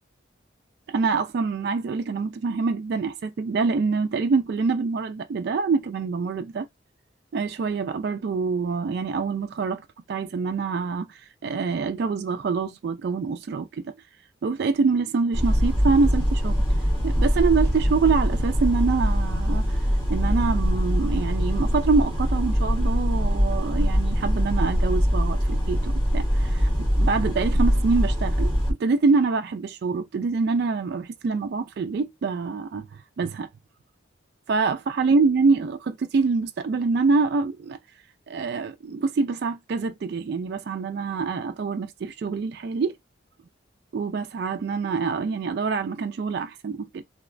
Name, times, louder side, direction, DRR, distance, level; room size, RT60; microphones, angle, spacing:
voice 1, 0.9-6.7 7.3-13.9 14.4-16.6 17.0-19.8 20.1-33.5 34.5-37.8 38.3-42.9 43.9-47.0, right 4 dB, 55° right, 0.3 m, -25 dB
sound 1, 15.3-28.7, equal, 20° left, 1.5 m, -23 dB
3.1 x 2.9 x 2.5 m
head